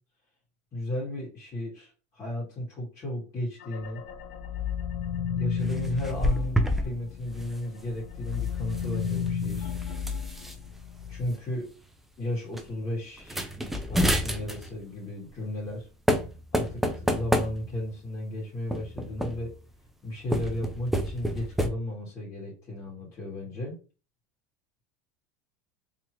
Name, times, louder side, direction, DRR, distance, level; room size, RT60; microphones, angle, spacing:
voice 1, 0.7-4.0 5.4-9.7 11.1-11.7 12.2-13.4 13.9-15.9 16.5-19.5 20.0-23.8, left 1 dB, 40° left, -6 dB, 2.1 m, -34 dB
sound 1, 3.6-7.5 7.9-11.2, left 7 dB, 70° left, 0.6 m, -33 dB
sound 2, 5.6-6.9 7.2-7.5 8.6-10.5 11.3-11.4 11.7-12.0 12.5-12.6 13.2-14.8 15.7-15.8 16.1-17.9 18.7-19.6 20.2-21.7, equal, 5° right, 0.5 m, -29 dB
3.5 x 2.9 x 3.0 m, 0.34 s
supercardioid pair, 130°, 8 cm